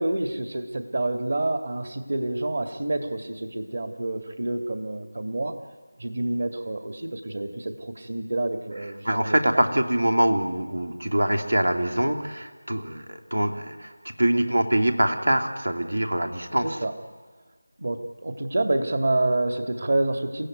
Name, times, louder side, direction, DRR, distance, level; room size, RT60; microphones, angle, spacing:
voice 1, 0.0-5.6 6.0-9.5 16.6-16.9 17.8-20.5, right 2 dB, 55° right, 7 dB, 2.0 m, -28 dB
voice 2, 9.0-13.9 14.2-16.8, right 1 dB, 90° right, 6 dB, 2.7 m, -24 dB
29.5 x 16.0 x 9.4 m, 1.5 s
figure-of-eight pair, 175°, 0 cm